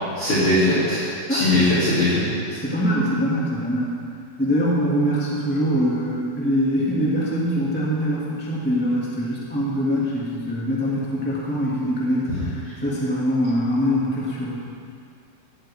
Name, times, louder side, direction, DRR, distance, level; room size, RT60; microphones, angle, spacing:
voice 1, 0.2-2.3 12.3-12.4, left 1 dB, 35° left, -11 dB, 4.1 m, -20 dB
voice 2, 1.3-1.6 2.5-3.9 4.4-14.6, equal, 5° left, -7 dB, 1.5 m, -23 dB
17.0 x 13.0 x 3.8 m, 2.3 s
omnidirectional pair, 4.7 m